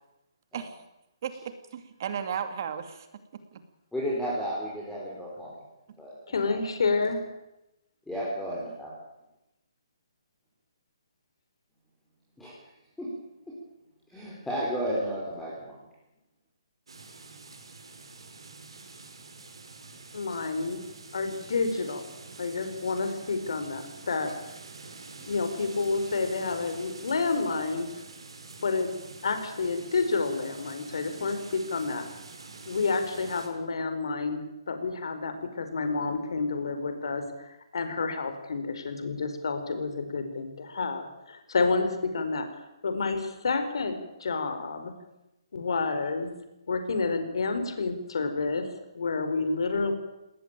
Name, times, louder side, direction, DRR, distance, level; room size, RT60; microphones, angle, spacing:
voice 1, 1.2-3.1 3.5-3.6 5.9-6.0, right 8 dB, 40° right, 9 dB, 2.5 m, -35 dB
voice 2, 3.9-5.5 6.0-6.6 8.1-8.9 12.4-12.5 13.0-13.1 14.1-15.7, equal, 5° left, -7 dB, 4.7 m, -33 dB
voice 3, 6.3-7.2 20.1-20.8 21.1-22.0 22.4-24.3 25.3-27.9 28.6-28.9 29.2-32.0 32.6-42.4 42.8-44.9 45.5-46.3 46.7-48.7 48.9-49.9, left 4 dB, 70° left, 8 dB, 4.8 m, -29 dB
sound 1, 16.9-33.5, right 4 dB, 90° right, 5.7 m, -46 dB
20.5 x 19.0 x 9.1 m, 0.93 s
hypercardioid pair, 165°, 3 cm